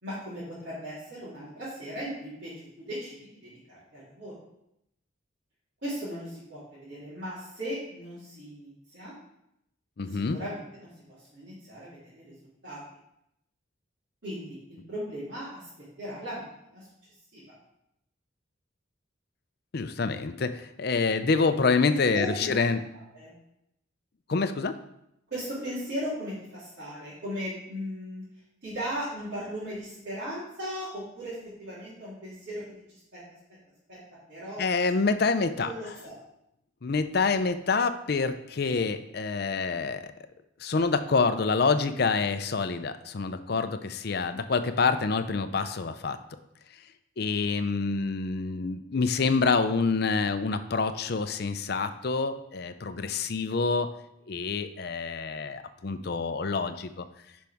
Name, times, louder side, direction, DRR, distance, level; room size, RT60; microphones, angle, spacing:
voice 1, 0.0-2.5 2.8-3.2 3.4-4.3 5.8-9.1 10.1-10.9 11.3-12.2 12.6-12.8 14.2-15.7 16.0-16.5 16.7-16.9 17.3-17.4 21.9-22.5 23.1-23.3 25.3-28.2 28.6-32.8 33.1-33.2 33.9-34.0 34.3-34.6 35.5-36.1, equal, 60° right, -11 dB, 3.1 m, -37 dB
voice 2, 10.0-10.4 19.7-22.8 24.3-24.8 34.6-35.9 36.8-40.1 40.6-46.2 47.2-53.9 54.3-57.1, left 4 dB, 50° left, 10 dB, 0.5 m, -27 dB
10.0 x 5.2 x 3.5 m, 0.81 s
head